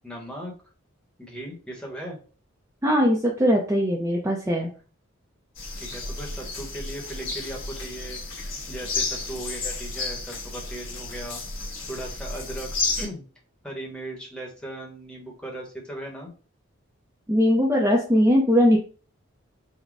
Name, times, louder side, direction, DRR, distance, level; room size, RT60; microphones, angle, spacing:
voice 1, 0.0-0.5 1.2-2.2 5.8-11.4 11.9-12.7 13.0-13.2 13.6-16.3, right 1 dB, 5° left, -1 dB, 1.0 m, -37 dB
voice 2, 2.8-4.7 17.3-18.8, equal, 15° right, -2 dB, 0.5 m, -20 dB
sound 1, 5.6-13.1, left 3 dB, 65° left, 1.3 m, -32 dB
4.0 x 2.2 x 4.6 m, 0.38 s
head